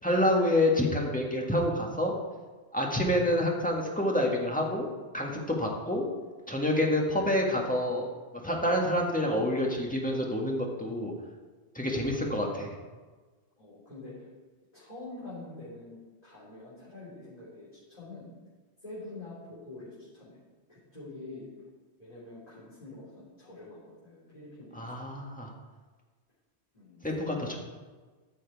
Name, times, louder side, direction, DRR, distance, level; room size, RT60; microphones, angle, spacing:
voice 1, 0.0-2.1 2.7-4.9 5.1-6.0 6.5-8.1 8.4-11.1 11.7-12.7 24.7-25.5 27.0-27.6, left 1 dB, 10° left, -2 dB, 1.6 m, -27 dB
voice 2, 13.6-14.1 14.7-18.3 18.8-20.4 20.7-21.5 22.0-25.3 26.7-27.6, left 2 dB, 35° left, -11 dB, 3.7 m, -46 dB
14.0 x 6.4 x 4.7 m, 1.3 s
omnidirectional pair, 1.1 m